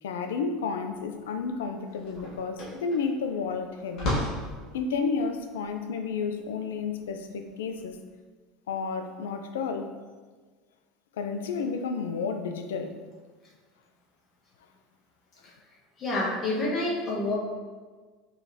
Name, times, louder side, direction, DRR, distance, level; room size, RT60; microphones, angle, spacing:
voice 1, 0.0-4.2 4.7-8.0 8.7-9.9 11.2-13.0, left 5 dB, 75° left, 7 dB, 0.4 m, -31 dB
sound 1, 1.5-7.9, left 1 dB, 55° left, 1.4 m, -36 dB
voice 2, 16.0-17.4, left 2 dB, 35° left, -5 dB, 1.4 m, -28 dB
4.6 x 3.2 x 2.8 m, 1.4 s
hypercardioid pair, 75°, 0 cm